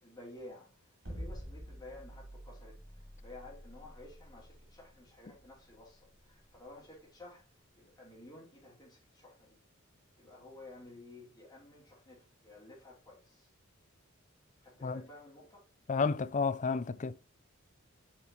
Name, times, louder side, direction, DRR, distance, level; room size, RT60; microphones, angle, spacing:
voice 1, 0.0-9.6 10.2-13.5 14.6-15.7, left 2 dB, 20° left, 2.9 m, -53 dB
sound 1, 1.1-7.2, equal, 85° right, 3.4 m, -48 dB
voice 2, 15.9-17.2, left 4 dB, 35° left, 0.5 m, -31 dB
8.6 x 6.1 x 3.1 m
head